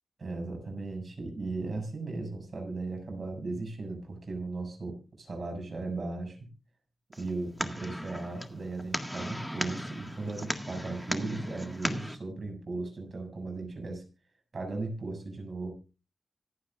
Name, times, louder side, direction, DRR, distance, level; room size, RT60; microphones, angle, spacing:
voice 1, 0.2-6.4 7.2-14.0 14.5-15.7, right 3 dB, 50° right, 2 dB, 6.8 m, -37 dB
sound 1, 7.1-12.2, equal, 5° left, 1.8 m, -36 dB
26.0 x 8.8 x 2.5 m, 0.32 s
wide cardioid pair, 95°, 0 cm